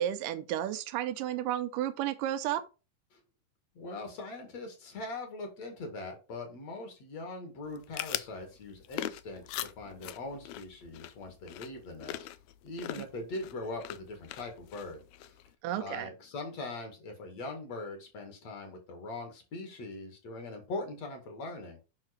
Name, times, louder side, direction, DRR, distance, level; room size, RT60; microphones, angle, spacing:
voice 1, 0.0-2.6 15.6-16.1, right 11 dB, 85° right, 2.3 m, -32 dB
voice 2, 3.7-12.3 12.6-15.4 15.8-21.8, left 2 dB, 55° left, 3.0 m, -41 dB
sound 1, 7.6-15.5, left 13 dB, 85° left, 1.7 m, -42 dB
7.6 x 5.8 x 4.3 m
omnidirectional pair, 3.8 m